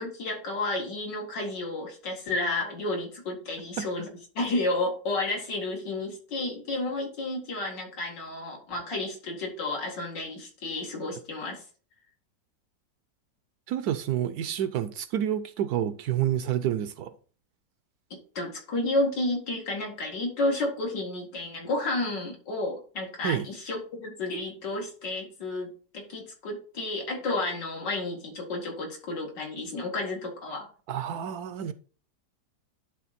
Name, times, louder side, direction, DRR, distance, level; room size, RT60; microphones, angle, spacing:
voice 1, 0.0-4.1 4.3-11.6 18.1-30.7, left 2 dB, 85° left, 2.8 m, -31 dB
voice 2, 13.7-17.1 23.2-23.5 30.9-31.7, right 10 dB, 70° right, 1.0 m, -29 dB
11.0 x 3.8 x 4.2 m
omnidirectional pair, 1.9 m